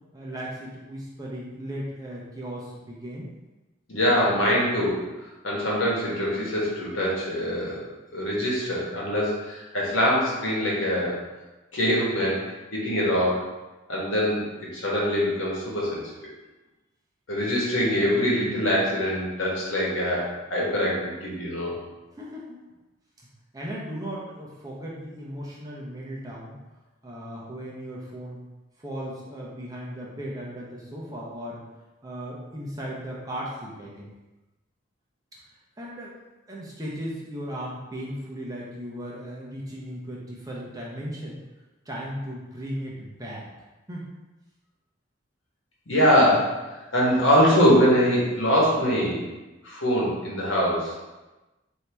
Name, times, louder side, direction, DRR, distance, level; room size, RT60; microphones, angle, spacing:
voice 1, 0.1-3.3 22.2-22.6 23.5-26.6 27.0-28.4 28.8-31.6 32.0-34.1 35.8-36.1 36.5-41.4 41.9-43.5 43.9-44.1, equal, 20° right, -5 dB, 0.7 m, -36 dB
voice 2, 3.9-5.1 5.4-7.8 8.1-11.2 11.7-13.5 13.9-16.3 17.3-21.8 45.9-49.3 49.6-50.9, equal, 80° left, -5 dB, 1.3 m, -23 dB
4.5 x 2.8 x 3.4 m, 1.1 s
head